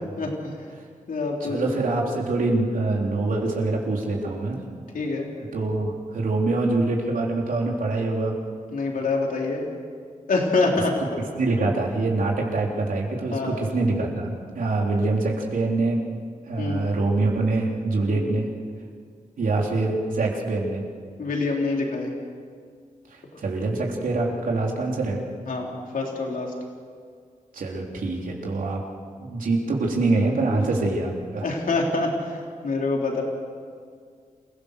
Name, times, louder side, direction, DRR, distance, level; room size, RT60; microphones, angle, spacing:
voice 1, 0.2-0.6 1.1-1.8 4.9-5.3 8.7-9.6 10.3-10.9 13.3-13.6 16.6-16.9 18.1-18.3 21.2-22.1 25.5-26.5 31.4-33.2, left 3 dB, 80° left, 0 dB, 3.7 m, -26 dB
voice 2, 1.4-4.6 5.5-8.3 11.0-11.1 11.4-16.0 16.5-18.5 19.4-20.8 23.4-25.2 27.5-28.8 29.2-31.4, right 2 dB, 85° right, -1 dB, 3.7 m, -24 dB
27.5 x 17.0 x 6.8 m, 2.1 s
wide cardioid pair, 105°, 14 cm